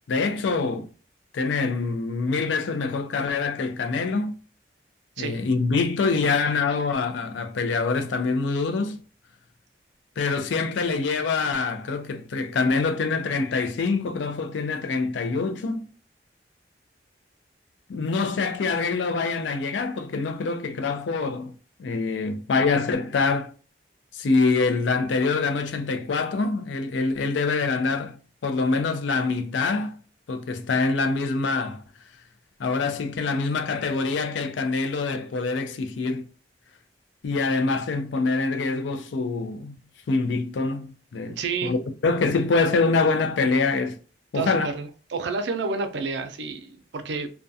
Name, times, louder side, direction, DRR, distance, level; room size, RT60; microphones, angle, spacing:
voice 1, 0.1-0.9 1.3-4.3 5.2-9.0 10.2-15.8 17.9-21.5 21.8-23.5 24.1-28.2 28.4-30.0 30.3-31.8 32.6-36.3 37.2-39.7 40.1-41.8 42.0-44.0 44.3-44.7, left 4 dB, 85° left, 0.4 m, -25 dB
voice 2, 41.3-41.8 44.3-47.3, right 4 dB, 75° right, 0.4 m, -30 dB
2.3 x 2.2 x 2.6 m
head